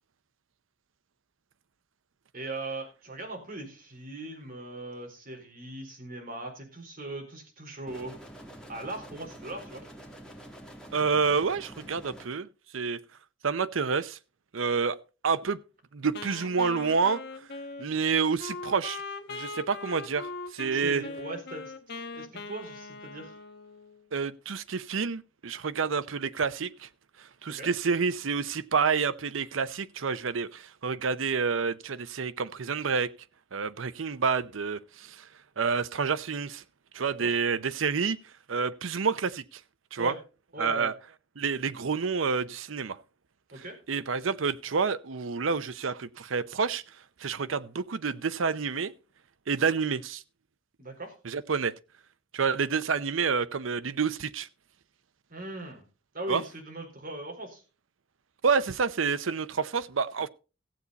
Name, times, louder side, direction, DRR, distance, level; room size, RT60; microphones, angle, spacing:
voice 1, 2.3-8.2 8.7-9.8 20.6-21.7 22.1-23.3 27.5-27.7 37.1-37.4 40.0-40.2 40.5-40.9 43.5-43.8 50.8-51.2 55.3-55.8 56.1-57.6, right 2 dB, 50° right, 4.4 m, -39 dB
sound 1, 7.9-12.3, right 1 dB, 5° left, 2.5 m, -47 dB
voice 2, 10.9-12.5 12.7-13.0 13.4-14.2 14.5-15.0 15.2-15.6 15.9-17.2 17.8-19.0 19.3-20.3 20.5-21.0 24.1-26.7 27.4-33.1 33.5-34.8 35.6-36.6 36.9-38.2 38.5-39.4 39.9-40.1 40.6-40.9 41.4-43.0 43.9-46.8 47.2-48.9 49.5-50.2 51.3-51.7 52.3-54.5 56.3-56.4 58.4-60.3, right 5 dB, 90° right, 0.7 m, -28 dB
Wind instrument woodwind instrument, 16.1-24.1, left 3 dB, 60° left, 1.2 m, -41 dB
15.0 x 8.4 x 4.0 m
head